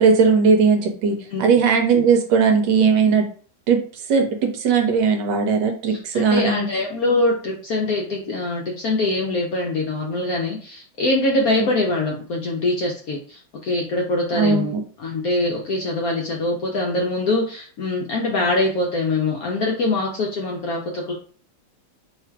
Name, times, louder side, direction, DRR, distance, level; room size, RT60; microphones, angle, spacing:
voice 1, 0.0-3.3 3.7-3.8 4.1-6.7 11.6-11.7 14.3-14.8, right 5 dB, 75° right, 4 dB, 1.1 m, -18 dB
voice 2, 5.9-14.7 15.0-21.1, left 2 dB, 65° left, -1 dB, 0.9 m, -23 dB
3.1 x 2.4 x 4.4 m, 0.44 s
omnidirectional pair, 2.1 m